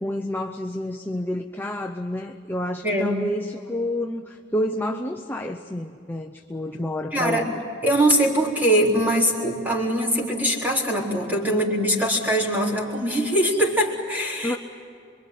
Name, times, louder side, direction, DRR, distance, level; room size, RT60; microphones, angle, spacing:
voice 1, 0.0-7.5 14.4-14.6, left 1 dB, 10° left, 3 dB, 0.8 m, -29 dB
voice 2, 2.8-3.2 7.1-7.5 7.8-14.6, equal, 10° right, -2 dB, 4.0 m, -22 dB
27.0 x 23.5 x 9.3 m, 2.5 s
head